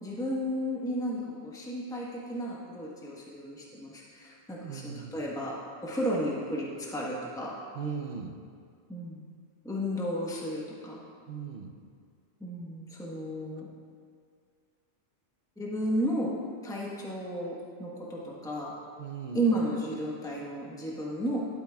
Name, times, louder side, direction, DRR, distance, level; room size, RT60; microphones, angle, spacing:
voice 1, 0.0-5.6 5.8-7.5 8.9-9.2 9.6-11.0 12.4-13.7 15.6-16.4 16.6-18.7 19.3-21.4, equal, 5° left, -4 dB, 1.0 m, -33 dB
voice 2, 4.5-5.1 7.7-8.3 11.3-11.7 19.0-19.4, right 6 dB, 60° right, 5 dB, 0.7 m, -38 dB
11.5 x 8.6 x 2.3 m, 2.2 s
omnidirectional pair, 1.2 m